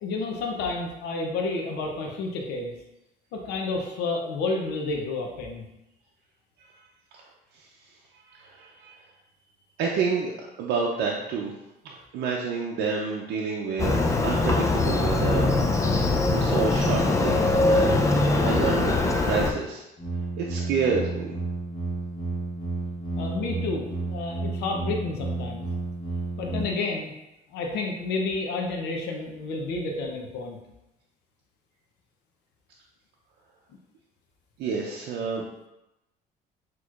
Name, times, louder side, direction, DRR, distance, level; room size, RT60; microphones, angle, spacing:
voice 1, 0.0-2.7 3.3-5.6 23.2-25.7 26.4-27.1 27.5-30.6, left 3 dB, 85° left, 1 dB, 0.7 m, -30 dB
voice 2, 8.3-9.0 9.8-10.3 10.6-11.5 11.8-15.5 16.3-19.8 20.4-21.3 34.6-35.4, right 5 dB, 75° right, -2 dB, 0.6 m, -29 dB
Motorcycle, 13.8-19.5, left 2 dB, 20° left, 0.4 m, -22 dB
sound 1, 20.0-26.6, right 2 dB, 35° left, 1.5 m, -31 dB
6.0 x 3.0 x 2.4 m, 0.91 s
cardioid pair, 110°, 17 cm